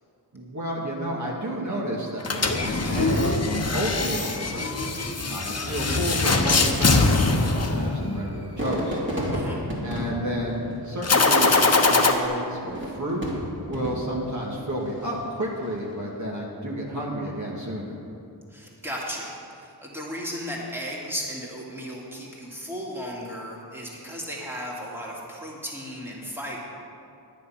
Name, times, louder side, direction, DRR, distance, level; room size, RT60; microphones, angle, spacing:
voice 1, 0.3-9.0 9.8-13.2 13.7-18.0, equal, 45° right, -4 dB, 2.1 m, -31 dB
sound 1, 2.2-8.4 11.0-12.1, left 3 dB, 35° left, 1.0 m, -22 dB
Fireworks, 3.0-4.6 5.4-5.5 6.2-11.5 12.6-14.3 14.9-15.4, equal, 25° right, 2.9 m, -32 dB
voice 2, 9.3-9.6 18.5-26.6, equal, 5° right, -4 dB, 2.6 m, -35 dB
10.5 x 9.7 x 5.9 m, 2.5 s
wide cardioid pair, 65°, 42 cm